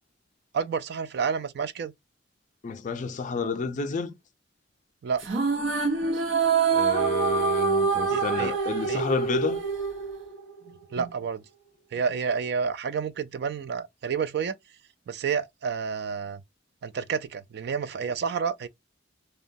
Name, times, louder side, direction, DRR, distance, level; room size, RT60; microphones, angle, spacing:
voice 1, 0.5-1.9 5.0-5.2 8.1-8.5 8.9-9.0 10.7-11.4 11.9-14.5 15.1-16.4 16.8-18.7, right 6 dB, 55° right, 0.3 m, -30 dB
voice 2, 2.6-4.1 6.7-9.6, left 5 dB, 40° left, 0.4 m, -30 dB
sound 1, 5.2-10.7, right 5 dB, 85° right, 0.8 m, -25 dB
2.9 x 2.2 x 2.6 m
head